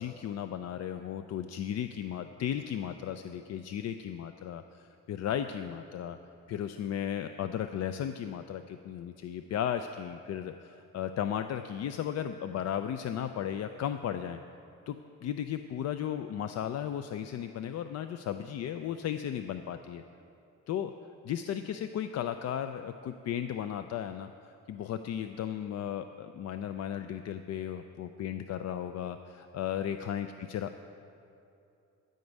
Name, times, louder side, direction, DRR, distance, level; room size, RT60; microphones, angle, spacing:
voice 1, 0.0-6.2 6.5-14.4 14.9-20.0 20.7-20.9 21.2-30.8, left 9 dB, 60° left, 9 dB, 0.5 m, -35 dB
13.0 x 5.3 x 8.0 m, 2.7 s
cardioid pair, 90°, 30 cm